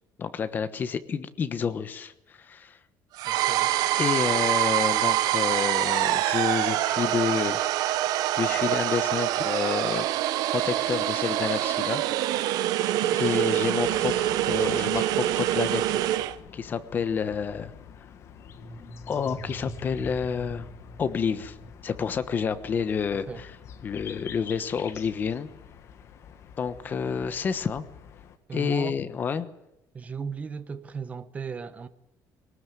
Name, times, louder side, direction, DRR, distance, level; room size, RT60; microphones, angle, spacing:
voice 1, 0.2-2.8 3.9-7.6 8.4-10.1 10.5-12.0 12.3-12.5 13.1-15.8 16.5-17.7 19.1-20.7 21.0-21.6 21.8-23.5 23.8-25.5 26.6-27.9 28.5-29.5, left 6 dB, 25° left, 1.1 m, -29 dB
sound 1, 3.2-16.4, right 14 dB, 70° right, 1.0 m, -25 dB
voice 2, 3.3-3.7 23.3-23.4 28.5-29.0 29.9-31.9, right 5 dB, 20° right, 1.0 m, -36 dB
sound 2, 13.8-28.4, left 8 dB, 45° left, 1.6 m, -47 dB
sound 3, 18.2-23.3, equal, 5° left, 6.3 m, -44 dB
21.0 x 19.0 x 9.2 m
cardioid pair, 180°, 7 cm